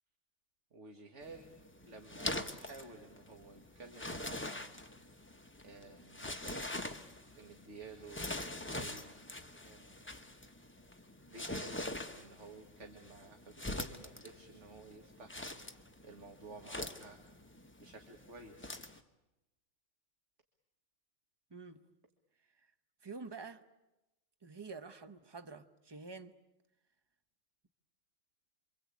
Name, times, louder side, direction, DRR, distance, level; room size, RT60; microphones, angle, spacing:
voice 1, 0.7-1.5 1.8-4.7 5.6-7.1 7.3-8.4 8.7-9.3 9.6-10.1 11.3-11.8 12.2-15.4 16.0-17.2 17.8-18.9, right 3 dB, 70° right, 3 dB, 2.3 m, -53 dB
sound 1, 1.2-19.0, left 1 dB, 10° left, 1.0 m, -44 dB
voice 2, 21.5-21.8 22.6-22.7 23.0-23.7 24.4-26.4, right 4 dB, 20° right, 9 dB, 0.9 m, -48 dB
27.5 x 24.5 x 8.4 m, 0.97 s
omnidirectional pair, 1.3 m